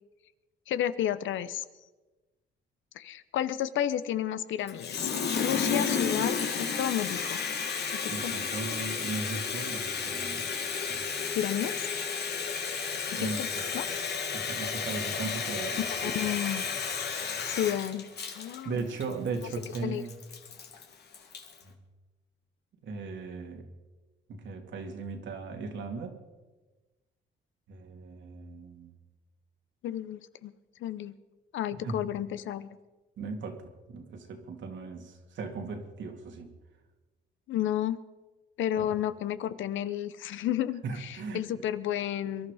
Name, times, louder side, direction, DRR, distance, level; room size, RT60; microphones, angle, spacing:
voice 1, 0.7-1.6 3.0-7.4 7.9-8.3 11.3-11.8 13.1-13.5 13.7-13.8 15.8-16.6 17.5-18.0 18.3-18.8 19.8-20.0 29.8-30.5 30.8-31.1 31.5-32.7 37.5-38.0 38.6-42.5, left 11 dB, 75° left, 15 dB, 0.8 m, -32 dB
Water tap faucet, 4.7-21.6, left 5 dB, 55° left, 2.0 m, -32 dB
voice 2, 8.1-10.5 10.9-11.1 13.2-13.7 14.3-16.2 18.6-20.2 22.8-23.7 24.3-26.2 27.7-28.9 31.8-32.0 33.2-36.5 38.8-38.9 40.8-41.4, right 4 dB, 70° right, 4 dB, 2.4 m, -37 dB
23.5 x 11.5 x 4.9 m, 1.2 s
cardioid pair, 90°, 20 cm